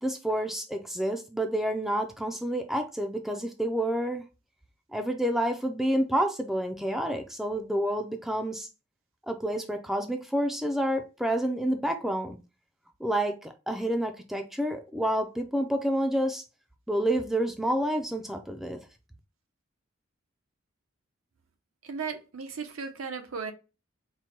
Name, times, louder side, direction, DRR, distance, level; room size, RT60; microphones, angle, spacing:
voice 1, 0.0-4.2 4.9-8.7 9.3-12.4 13.0-16.4 16.9-18.8, right 1 dB, ahead, 0.4 m, -29 dB
voice 2, 21.8-23.5, right 5 dB, 85° right, 0.8 m, -36 dB
4.5 x 2.2 x 4.4 m
head